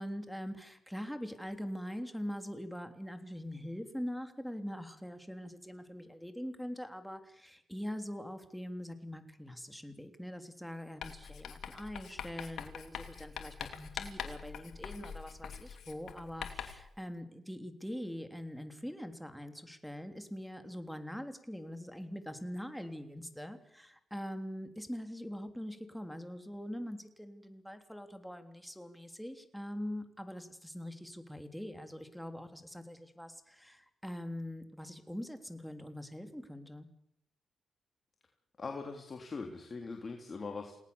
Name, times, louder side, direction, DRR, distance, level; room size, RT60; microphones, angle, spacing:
voice 1, 0.0-36.9, equal, ahead, 7 dB, 3.3 m, -43 dB
Writing, 11.0-16.9, left 8 dB, 75° left, 2.7 m, -44 dB
voice 2, 38.6-40.7, left 4 dB, 40° left, 3 dB, 3.4 m, -41 dB
29.0 x 18.5 x 7.2 m, 0.76 s
cardioid pair, 65°, 0 cm